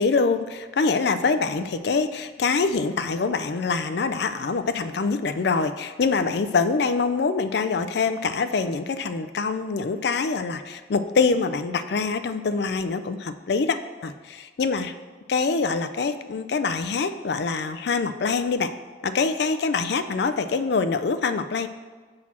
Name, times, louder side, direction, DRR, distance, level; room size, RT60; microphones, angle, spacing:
voice 1, 0.0-14.9 15.3-18.7 19.0-21.7, left 4 dB, 60° left, 11 dB, 0.4 m, -25 dB
6.3 x 4.2 x 5.9 m, 1.4 s
head